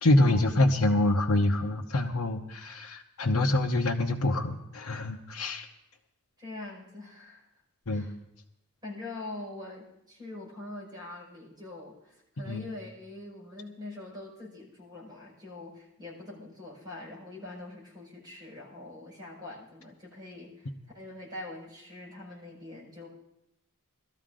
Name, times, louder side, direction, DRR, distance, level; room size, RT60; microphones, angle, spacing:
voice 1, 0.0-5.7 7.9-8.1 12.5-12.7, left 2 dB, 65° left, 0 dB, 0.9 m, -26 dB
voice 2, 6.4-7.5 7.9-8.1 8.8-20.7 20.9-23.1, left 2 dB, 20° right, -5 dB, 5.3 m, -43 dB
19.5 x 13.0 x 3.8 m, 0.84 s
head